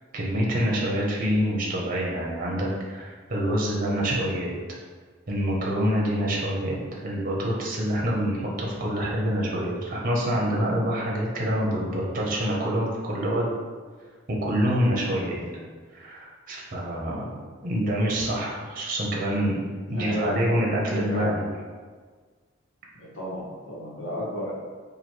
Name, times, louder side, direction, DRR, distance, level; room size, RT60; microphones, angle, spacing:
voice 1, 0.1-4.5 5.3-13.5 14.4-15.4 15.9-17.3 17.6-19.6 19.9-21.4, equal, 45° right, -3 dB, 0.7 m, -26 dB
voice 2, 15.3-15.6 19.9-20.5 20.9-21.3 22.9-24.5, equal, 70° left, -7 dB, 1.4 m, -33 dB
3.0 x 2.6 x 4.4 m, 1.5 s
head